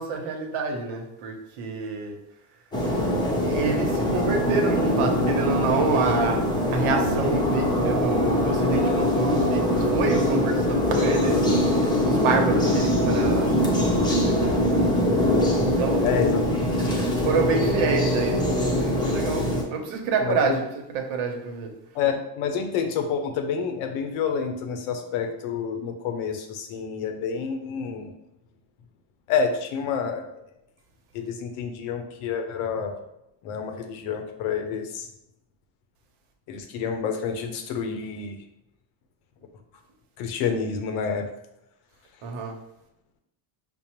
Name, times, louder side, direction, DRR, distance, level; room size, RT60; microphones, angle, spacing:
voice 1, 0.0-2.2 3.4-6.4 6.7-13.7 14.1-14.8 15.8-16.2 17.1-18.5 18.7-20.6 20.9-21.7 42.2-42.6, right 4 dB, 75° right, 2 dB, 0.9 m, -28 dB
sound 1, 2.7-19.6, left 1 dB, 10° left, 0.6 m, -23 dB
voice 2, 16.0-16.4 16.7-17.0 20.2-20.6 21.9-28.1 29.3-30.2 31.1-32.9 33.4-35.1 36.5-38.4 40.2-41.3, left 6 dB, 80° left, 5 dB, 0.7 m, -28 dB
5.2 x 2.0 x 2.9 m, 0.85 s
cardioid pair, 120°, 49 cm